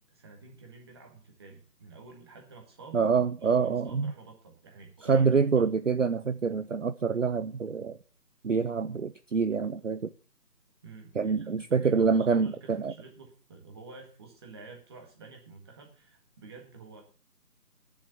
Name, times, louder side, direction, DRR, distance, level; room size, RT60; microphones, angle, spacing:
voice 1, 0.0-3.0 3.4-5.3 5.6-5.7 10.8-17.0, right 4 dB, 15° right, 1.8 m, -50 dB
voice 2, 2.9-4.1 5.1-8.0 8.4-10.1 11.2-12.9, right 5 dB, 50° right, 0.6 m, -26 dB
10.5 x 7.1 x 7.8 m
figure-of-eight pair, 165°, 48 cm